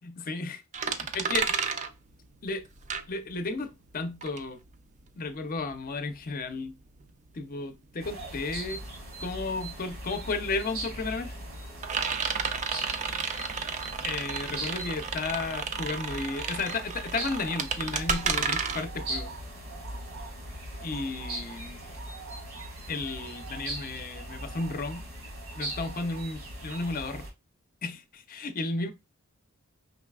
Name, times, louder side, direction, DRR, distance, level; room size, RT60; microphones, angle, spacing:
voice 1, 0.0-1.7 2.4-2.6 3.1-4.6 5.2-6.7 7.3-8.8 9.2-11.4 14.0-19.3 20.8-21.8 22.9-25.1 25.5-27.2 27.8-28.9, left 3 dB, 45° left, 0.6 m, -33 dB
sound 1, 0.7-3.6 3.9-20.3, right 5 dB, 35° right, 0.4 m, -33 dB
sound 2, 8.0-27.3, right 1 dB, 85° right, 1.7 m, -40 dB
5.2 x 3.2 x 2.3 m
head